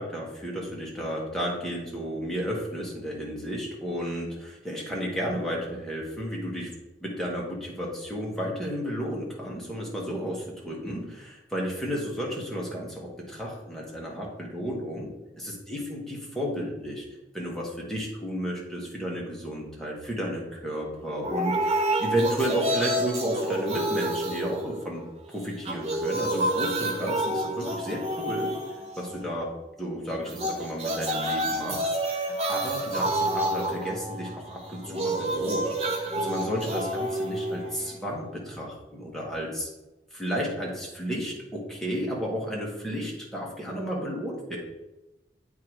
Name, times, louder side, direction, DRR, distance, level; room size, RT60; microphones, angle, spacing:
voice 1, 0.0-6.7 7.0-15.1 15.4-17.0 17.3-28.5 29.0-29.5 29.8-35.7 36.0-39.7 40.1-44.6, equal, ahead, -3 dB, 1.4 m, -32 dB
sound 1, 21.2-25.2 25.5-29.3 30.2-38.2, right 1 dB, 35° right, 1.1 m, -29 dB
8.3 x 3.8 x 4.7 m, 1.0 s
head